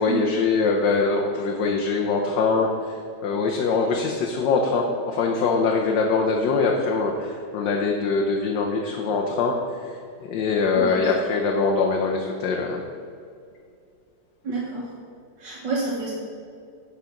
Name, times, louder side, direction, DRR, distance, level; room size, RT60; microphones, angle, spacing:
voice 1, 0.0-10.0 10.3-12.8, left 4 dB, 75° left, 0 dB, 1.5 m, -23 dB
voice 2, 10.8-11.1 14.4-14.9 15.4-16.1, right 3 dB, 75° right, -5 dB, 2.1 m, -29 dB
11.0 x 5.1 x 5.8 m, 2.3 s
omnidirectional pair, 1.9 m